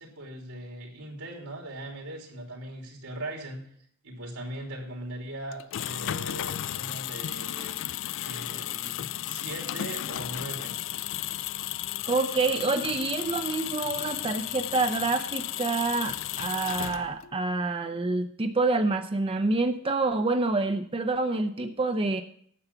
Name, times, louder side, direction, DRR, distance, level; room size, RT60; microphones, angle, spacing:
voice 1, 0.0-3.6 4.0-7.8 8.2-10.7, right 1 dB, 85° right, 0 dB, 3.1 m, -39 dB
sound 1, 5.5-17.3, left 12 dB, 60° left, 0.3 m, -34 dB
voice 2, 12.1-22.2, right 3 dB, 25° right, 6 dB, 0.5 m, -27 dB
9.7 x 7.0 x 6.8 m, 0.64 s
head